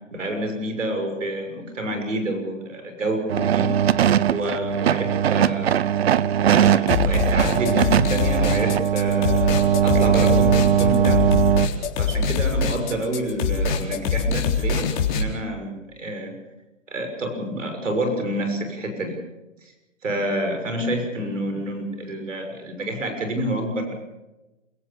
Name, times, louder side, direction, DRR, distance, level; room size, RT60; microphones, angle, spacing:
voice 1, 0.1-5.9 6.4-11.4 12.0-16.3 16.9-19.2 20.0-23.9, right 1 dB, 75° right, 6 dB, 6.5 m, -28 dB
sound 1, 3.3-11.7, right 9 dB, 55° right, 0.9 m, -20 dB
sound 2, 6.9-15.2, left 4 dB, 40° left, 3.9 m, -23 dB
27.5 x 16.5 x 7.1 m, 1.0 s
hypercardioid pair, 145°, 38 cm